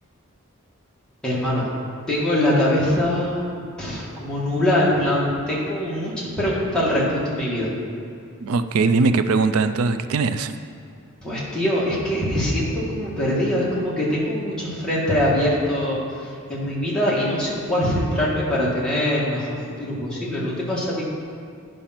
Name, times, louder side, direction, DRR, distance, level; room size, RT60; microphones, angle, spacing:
voice 1, 1.2-1.7 2.1-3.5 3.8-7.7 11.2-16.0 16.5-21.0, left 1 dB, 5° left, -7 dB, 1.7 m, -23 dB
voice 2, 8.4-10.5, right 4 dB, 80° right, 11 dB, 0.4 m, -20 dB
10.0 x 5.4 x 5.8 m, 2.4 s
head